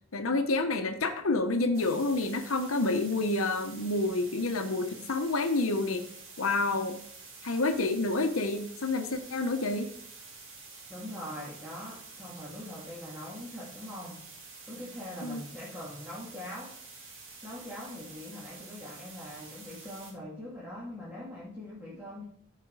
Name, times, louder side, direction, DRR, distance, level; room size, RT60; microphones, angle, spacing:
voice 1, 0.1-6.0 6.4-7.0 7.4-9.9 15.2-15.4, left 2 dB, 75° left, 7 dB, 0.9 m, -28 dB
sound 1, 1.7-20.1, right 4 dB, 75° right, 2.3 m, -49 dB
voice 2, 10.9-14.2 14.7-16.7 17.4-22.2, left 1 dB, 10° right, -7 dB, 2.3 m, -42 dB
13.5 x 5.0 x 4.8 m, 0.67 s
head